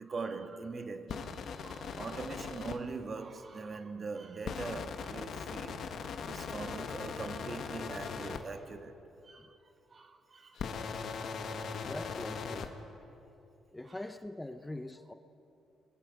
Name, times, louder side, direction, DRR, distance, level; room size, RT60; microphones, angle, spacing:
voice 1, 0.0-9.0 9.2-10.6 13.8-14.0, right 4 dB, 40° right, 1.5 m, -42 dB
sound 1, 1.1-2.8 4.4-8.4 10.5-12.7, left 6 dB, 65° left, 1.5 m, -39 dB
voice 2, 11.8-12.7 13.7-15.1, left 1 dB, 10° left, 0.8 m, -42 dB
29.0 x 21.5 x 5.3 m
cardioid pair, 90°, 0 cm